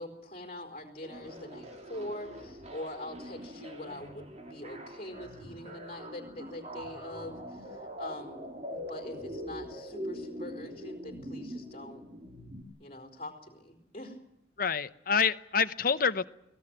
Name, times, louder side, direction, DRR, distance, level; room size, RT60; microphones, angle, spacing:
voice 1, 0.0-12.0 12.8-14.2, left 1 dB, 30° left, 5 dB, 4.2 m, -43 dB
sound 1, 1.0-12.6, equal, 35° right, 2.8 m, -43 dB
voice 2, 14.6-16.3, left 6 dB, 50° left, 12 dB, 0.8 m, -27 dB
23.5 x 18.0 x 9.0 m, 0.83 s
head